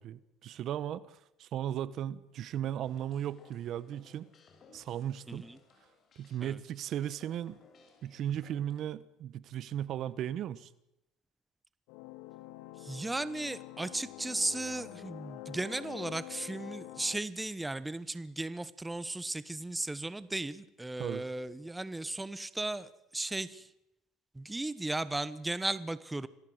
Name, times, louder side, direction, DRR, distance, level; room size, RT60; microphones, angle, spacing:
voice 1, 0.0-4.3 4.7-5.5 6.2-7.6 8.0-10.7 21.0-21.2, right 10 dB, 50° right, 17 dB, 1.1 m, -36 dB
sound 1, 2.8-8.8, left 5 dB, 40° left, 6.2 m, -61 dB
voice 2, 5.3-5.6 6.4-6.6 12.8-23.7 24.3-26.3, right 2 dB, 10° right, 15 dB, 1.1 m, -36 dB
sound 2, 11.9-17.2, left 18 dB, 80° left, 1.1 m, -47 dB
27.5 x 18.0 x 8.0 m, 0.86 s
cardioid pair, 120°, 0 cm